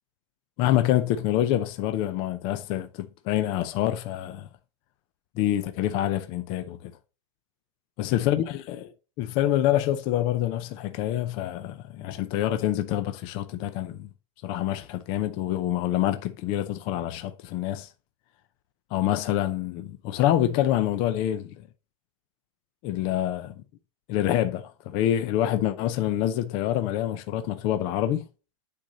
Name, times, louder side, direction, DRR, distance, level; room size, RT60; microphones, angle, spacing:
voice 1, 0.6-4.5 5.4-6.9 8.0-8.9 9.2-14.1 14.4-17.9 18.9-21.7 22.8-23.5 24.1-28.3, left 12 dB, 30° left, 0.5 m, -26 dB
9.3 x 4.1 x 3.8 m
supercardioid pair, 160°, 17 cm